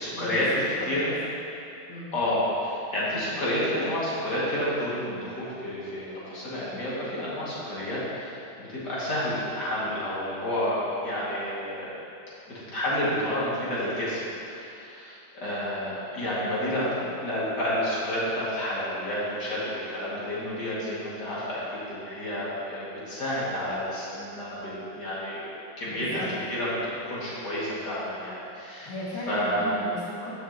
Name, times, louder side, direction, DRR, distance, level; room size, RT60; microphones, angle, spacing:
voice 1, 0.0-1.0 2.1-11.9 12.5-25.5 25.8-26.2 26.5-28.9 29.3-29.7, left 1 dB, 55° left, -9 dB, 2.6 m, -30 dB
voice 2, 0.8-1.4 1.9-2.1 25.9-26.3 28.8-30.4, equal, 80° left, -8 dB, 2.9 m, -36 dB
14.0 x 6.3 x 2.9 m, 2.7 s
omnidirectional pair, 2.2 m